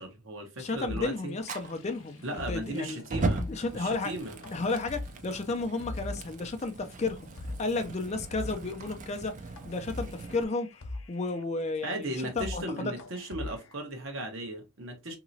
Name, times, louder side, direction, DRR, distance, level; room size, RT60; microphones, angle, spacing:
voice 1, 0.0-1.3 2.2-3.5 3.7-4.4 11.8-15.2, right 1 dB, 70° right, 1.1 m, -36 dB
voice 2, 0.6-3.0 3.4-4.1 4.5-9.3 9.6-10.7 11.1-12.9, left 3 dB, 30° left, 0.4 m, -33 dB
sound 1, 0.9-6.4 6.7-6.8 7.2-7.7 8.0-8.1 8.3-8.8 9.3-9.4 9.6-11.4 11.9-12.0 12.2-12.7 13.0-13.7, left 2 dB, 75° left, 0.6 m, -42 dB
Fire, 1.4-10.4, right 3 dB, 35° right, 0.4 m, -38 dB
3.0 x 2.8 x 2.6 m
head